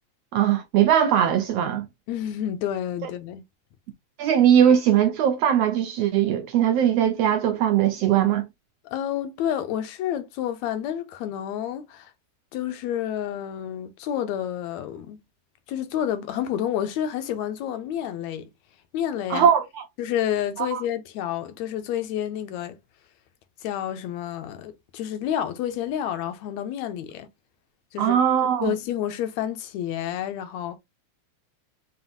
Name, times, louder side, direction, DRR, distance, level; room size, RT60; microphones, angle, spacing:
voice 1, 0.3-1.9 4.2-8.5 19.3-19.8 20.6-20.8 28.0-28.7, right 9 dB, 80° right, 1.4 m, -20 dB
voice 2, 2.1-3.4 8.9-12.1 12.5-15.2 15.7-18.5 18.9-19.5 20.0-22.8 23.6-27.3 27.9-28.2 28.6-30.8, left 10 dB, 75° left, 1.9 m, -29 dB
5.7 x 2.5 x 2.5 m
omnidirectional pair, 3.3 m